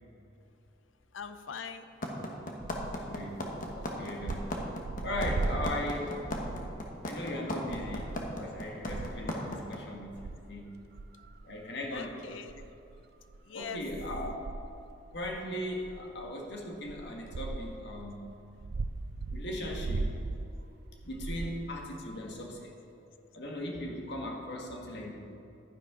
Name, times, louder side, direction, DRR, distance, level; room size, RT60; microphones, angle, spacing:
voice 1, 1.1-1.9 11.9-12.7 13.5-13.8 21.9-22.0, left 6 dB, 80° left, 10 dB, 0.6 m, -42 dB
sound 1, 2.0-9.8, left 1 dB, 45° left, 1.2 m, -35 dB
sound 2, 2.6-7.0 7.3-7.4 7.7-9.4 9.9-10.4 11.0-12.1 12.5-18.1 18.6-21.8, right 3 dB, 55° right, 0.4 m, -38 dB
voice 2, 2.9-3.4 3.7-4.4 5.0-6.2 7.0-10.7 11.4-12.2 13.5-14.3 15.1-18.2 19.3-20.1 21.0-22.7 23.3-25.1, left 1 dB, 65° left, 0 dB, 1.7 m, -38 dB
11.5 x 10.0 x 3.8 m, 2.7 s
head